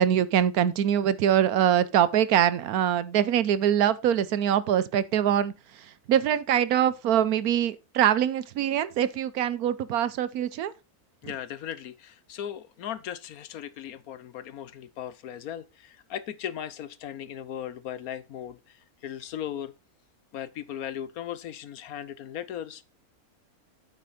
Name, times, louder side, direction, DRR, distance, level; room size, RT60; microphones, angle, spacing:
voice 1, 0.0-10.7, right 10 dB, 85° right, 1.2 m, -24 dB
voice 2, 11.2-19.7 20.3-22.8, left 10 dB, 75° left, 1.3 m, -37 dB
8.4 x 8.1 x 4.2 m
omnidirectional pair, 1.6 m